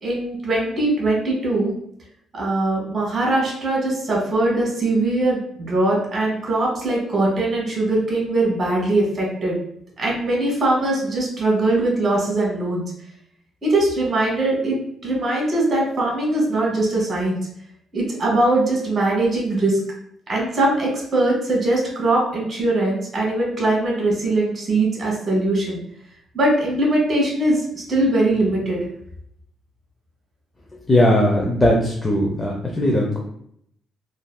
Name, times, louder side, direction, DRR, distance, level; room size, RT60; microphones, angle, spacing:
voice 1, 0.0-1.7 2.3-5.4 5.7-9.6 10.0-12.8 13.6-17.4 17.9-19.8 20.3-25.8 26.3-28.8, right 2 dB, 40° right, -2 dB, 1.4 m, -21 dB
voice 2, 30.9-33.2, left 1 dB, 20° left, -2 dB, 0.6 m, -18 dB
3.3 x 2.6 x 2.3 m, 0.69 s
cardioid pair, 90°, 0 cm